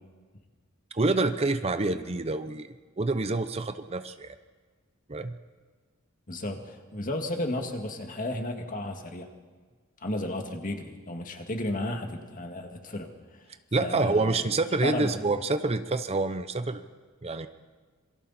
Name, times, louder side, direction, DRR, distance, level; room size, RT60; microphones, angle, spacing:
voice 1, 0.9-4.4 5.1-5.4 13.7-16.8 17.2-17.5, right 3 dB, 30° right, 10 dB, 0.7 m, -27 dB
voice 2, 6.3-9.3 10.0-13.4 13.8-14.4 14.8-15.2, left 1 dB, 40° left, 4 dB, 2.0 m, -33 dB
27.5 x 23.0 x 4.3 m, 1.4 s
head